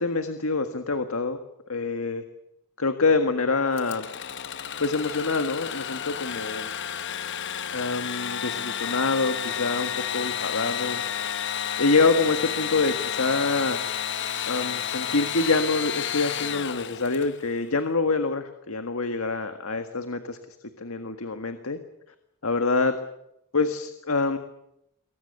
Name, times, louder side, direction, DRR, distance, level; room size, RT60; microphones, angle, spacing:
voice 1, 0.0-1.4 1.7-2.2 2.8-4.1 4.8-6.7 7.7-11.0 11.8-13.8 14.5-20.4 20.8-21.8 22.4-23.0 23.5-24.4, left 3 dB, 90° left, 7 dB, 1.7 m, -26 dB
Engine / Sawing, 3.7-17.5, left 9 dB, 55° left, 1.0 m, -31 dB
27.0 x 23.0 x 6.8 m, 0.80 s
head